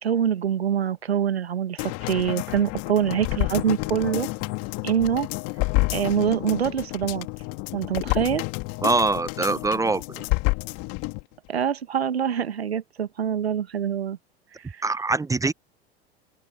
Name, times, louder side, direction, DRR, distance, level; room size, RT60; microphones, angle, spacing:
voice 1, 0.0-4.3 4.8-5.3 5.9-7.3 7.7-8.4 11.5-14.2 14.7-14.8, right 8 dB, 85° right, 1.6 m, -25 dB
sound 1, 1.8-11.2 11.6-11.7, left 26 dB, 50° left, 2.0 m, -29 dB
sound 2, 2.4-7.5, right 21 dB, 65° right, 4.6 m, -54 dB
voice 2, 8.8-10.3 14.8-15.5, right 3 dB, 10° right, 0.8 m, -23 dB
hypercardioid pair, 80°, 31 cm